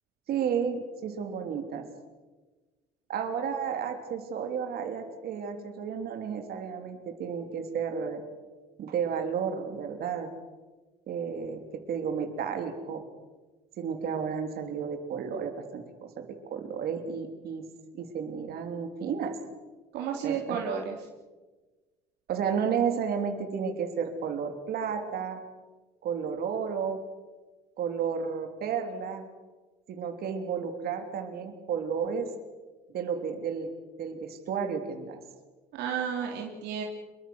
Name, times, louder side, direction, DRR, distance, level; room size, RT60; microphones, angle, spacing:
voice 1, 0.3-1.9 3.1-8.2 8.8-10.3 11.1-13.1 13.8-17.6 17.9-19.4 20.2-20.6 22.3-25.4 26.0-27.0 27.8-29.2 29.9-32.3 32.9-33.7 34.0-35.2, right 7 dB, 65° right, 5 dB, 3.3 m, -32 dB
voice 2, 19.9-21.0 35.7-36.8, right 7 dB, 85° right, 0 dB, 3.2 m, -32 dB
27.0 x 23.0 x 6.3 m, 1.3 s
cardioid pair, 110°, 17 cm